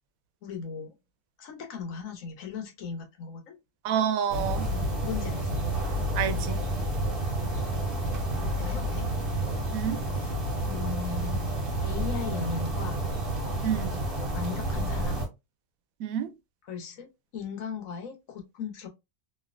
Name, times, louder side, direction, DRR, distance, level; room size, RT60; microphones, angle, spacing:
voice 1, 0.4-0.9 1.4-3.5 4.5-5.6 6.8-6.9 8.6-9.1 10.2-10.3 10.7-11.4 11.8-13.0 14.3-15.2 16.6-18.9, left 6 dB, 75° left, 1.2 m, -37 dB
voice 2, 3.8-4.7 6.1-6.6 9.7-10.0 13.6-13.9 16.0-16.3, right 9 dB, 90° right, 1.0 m, -28 dB
sound 1, 4.3-15.3, right 1 dB, 45° right, 1.3 m, -30 dB
3.1 x 2.7 x 2.4 m
omnidirectional pair, 1.4 m